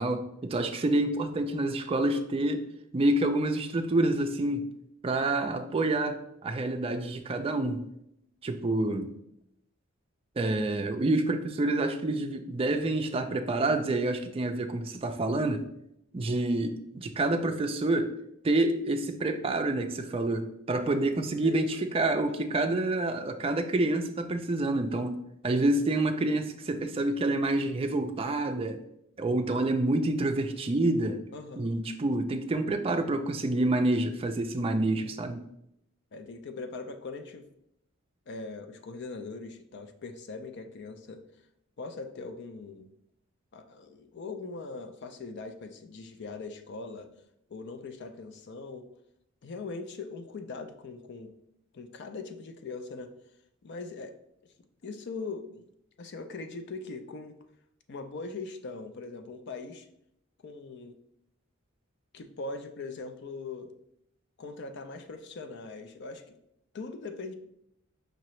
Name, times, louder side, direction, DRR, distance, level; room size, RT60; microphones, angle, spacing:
voice 1, 0.0-2.6 2.9-4.7 5.0-7.8 8.4-9.1 10.4-15.6 16.1-18.1 18.4-25.2 25.4-28.8 29.2-31.2 31.6-35.4, right 2 dB, 25° right, 6 dB, 0.4 m, -28 dB
voice 2, 21.4-21.9 31.3-31.7 36.1-37.5 38.3-41.2 41.8-42.9 43.5-47.1 47.5-48.9 49.4-51.3 51.7-53.1 53.6-54.1 54.4-54.5 54.8-55.6 56.0-57.4 57.9-59.9 60.4-61.0 62.1-63.7 64.4-66.3 66.7-67.3, left 3 dB, 55° left, 8 dB, 0.5 m, -41 dB
5.1 x 2.8 x 3.1 m, 0.77 s
head